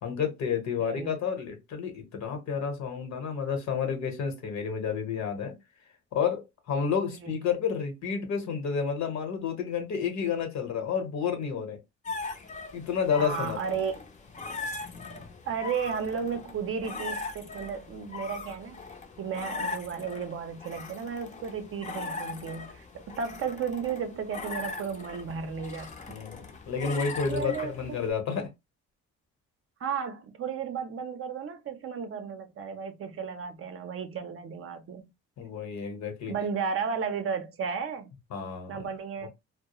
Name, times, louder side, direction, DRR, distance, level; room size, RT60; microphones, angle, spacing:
voice 1, 0.0-5.5 6.1-11.8 12.7-13.8 26.1-28.5 35.4-36.3 38.3-38.9, left 6 dB, 65° left, 0.9 m, -30 dB
voice 2, 0.8-1.2 7.2-7.4 13.2-14.0 15.5-18.8 19.2-25.9 27.3-27.8 29.8-35.1 36.3-38.1 38.7-39.3, right 6 dB, 45° right, 0.5 m, -34 dB
sound 1, 12.0-28.1, left 4 dB, 25° left, 0.5 m, -40 dB
2.2 x 2.0 x 2.9 m
cardioid pair, 90°, 30 cm